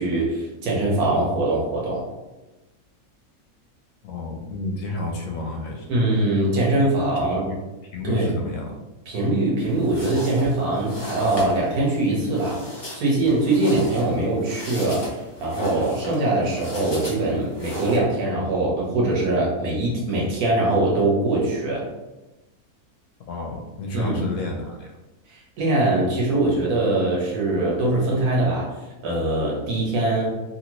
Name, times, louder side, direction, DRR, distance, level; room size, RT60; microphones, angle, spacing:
voice 1, 0.0-2.0 5.9-7.4 8.0-8.3 9.1-12.6 12.9-15.0 15.4-21.9 23.9-24.2 25.3-28.7 29.0-30.3, right 2 dB, 75° right, -4 dB, 1.5 m, -22 dB
voice 2, 4.0-6.0 7.2-7.6 7.9-8.7 23.3-24.9, left 2 dB, 70° left, 1 dB, 0.9 m, -30 dB
sound 1, 9.6-18.0, equal, 35° left, 0.4 m, -36 dB
2.9 x 2.9 x 2.9 m, 1.0 s
omnidirectional pair, 1.6 m